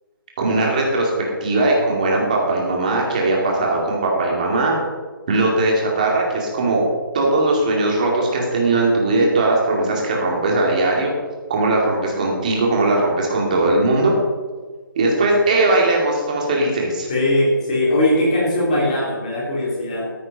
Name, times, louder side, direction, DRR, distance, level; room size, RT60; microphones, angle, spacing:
voice 1, 0.4-1.1 1.4-4.8 5.3-6.8 7.1-11.1 11.5-14.1 15.0-17.1, right 2 dB, 20° right, -2 dB, 2.4 m, -19 dB
voice 2, 17.1-20.1, left 1 dB, 20° left, -5 dB, 3.2 m, -20 dB
14.0 x 8.8 x 5.3 m, 1.4 s
hypercardioid pair, 175°, 12 cm